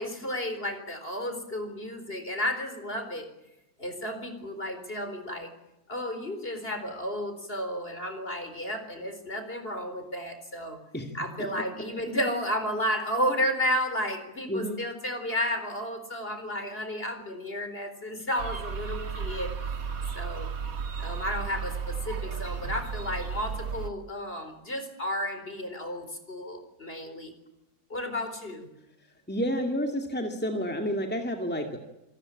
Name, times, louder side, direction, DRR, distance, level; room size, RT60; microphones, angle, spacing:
voice 1, 0.0-3.3 3.8-5.5 5.9-10.8 11.1-19.5 20.1-20.5 21.0-27.3 27.9-28.7, equal, 40° left, 8 dB, 4.4 m, -32 dB
voice 2, 14.5-14.8 29.3-31.8, equal, 5° left, 4 dB, 2.3 m, -30 dB
sound 1, 18.4-23.9, right 6 dB, 65° right, 2.0 m, -34 dB
27.0 x 19.0 x 8.9 m, 0.95 s
omnidirectional pair, 1.6 m